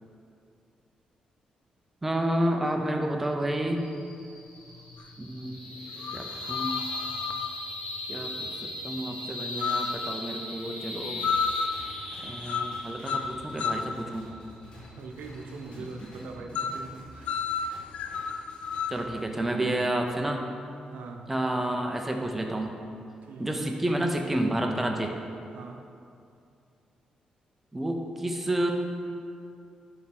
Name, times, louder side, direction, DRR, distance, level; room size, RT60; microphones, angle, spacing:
voice 1, 2.0-3.9 5.2-5.6 6.1-6.7 8.1-11.2 12.2-14.3 18.9-20.4 21.3-22.8 23.4-25.2 27.7-28.7, right 1 dB, 10° right, 2 dB, 0.6 m, -30 dB
sound 1, 3.8-16.4, left 1 dB, 80° left, 2.0 m, -38 dB
sound 2, 5.0-5.1 6.0-7.6 9.6-10.0 11.2-11.8 12.4-12.8 13.1-13.9 16.5-16.8 17.3-19.0, left 6 dB, 65° left, 0.3 m, -31 dB
sound 3, 11.2-19.2, equal, 45° left, 1.7 m, -50 dB
voice 2, 14.9-17.4 20.9-21.3 23.2-23.5 25.5-25.8, right 4 dB, 85° right, 3 dB, 0.8 m, -42 dB
7.8 x 4.4 x 5.8 m, 2.5 s
wide cardioid pair, 170°, 2 cm